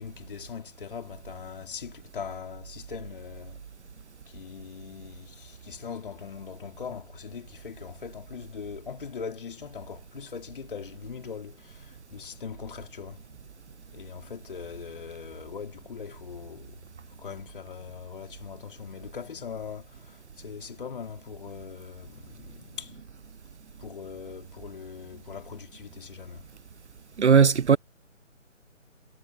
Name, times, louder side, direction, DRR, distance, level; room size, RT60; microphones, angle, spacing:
voice 1, 0.0-3.6 4.3-13.3 13.9-16.9 17.2-23.1 23.8-26.5, left 6 dB, 40° left, 4.2 m, -41 dB
voice 2, 27.2-27.8, right 6 dB, 60° right, 0.6 m, -17 dB
figure-of-eight pair, 150°, 39 cm